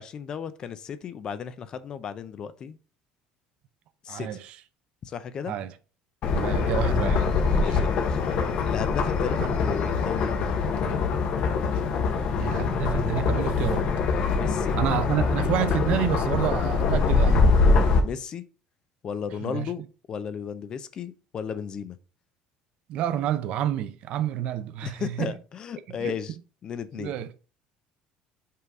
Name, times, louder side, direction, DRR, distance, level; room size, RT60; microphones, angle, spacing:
voice 1, 0.0-2.8 4.0-4.4 5.0-5.5 7.5-8.2 8.6-10.6 14.3-14.8 17.7-18.4 19.0-19.8 20.1-22.0 24.8-26.4 26.6-27.1, left 7 dB, 30° left, 0.5 m, -34 dB
voice 2, 4.1-4.6 5.5-5.7 6.3-7.8 12.4-13.9 14.7-17.4 19.4-19.7 22.9-25.4 26.0-26.2 27.0-27.3, right 11 dB, 50° right, 0.6 m, -29 dB
sound 1, 6.2-18.0, left 4 dB, 50° left, 1.0 m, -23 dB
5.6 x 3.9 x 4.7 m
cardioid pair, 160°, 2 cm